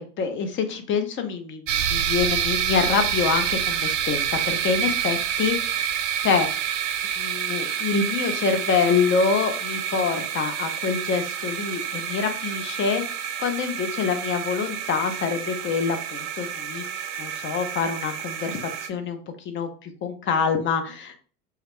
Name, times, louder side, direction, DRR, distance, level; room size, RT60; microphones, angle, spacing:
voice 1, 0.0-6.5 7.2-21.2, left 5 dB, 25° left, 8 dB, 0.5 m, -26 dB
sound 1, 1.7-18.9, right 9 dB, 55° right, 0.5 m, -28 dB
2.2 x 2.2 x 3.4 m, 0.40 s
figure-of-eight pair, 75°, 46 cm